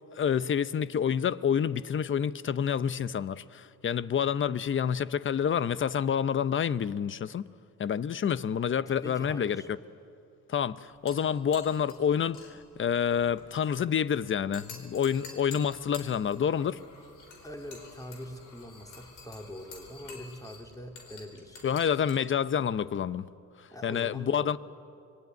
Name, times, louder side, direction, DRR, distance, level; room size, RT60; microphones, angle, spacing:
voice 1, 0.1-7.5 7.8-9.6 10.5-16.8 21.6-23.3 23.6-24.6, left 8 dB, 40° left, 0.8 m, -28 dB
voice 2, 8.9-9.7 17.4-21.7 23.7-24.6, equal, 10° left, 3.2 m, -43 dB
sound 1, 10.9-23.2, left 4 dB, 90° left, 4.4 m, -50 dB
25.5 x 22.0 x 9.5 m
cardioid pair, 90°, 30 cm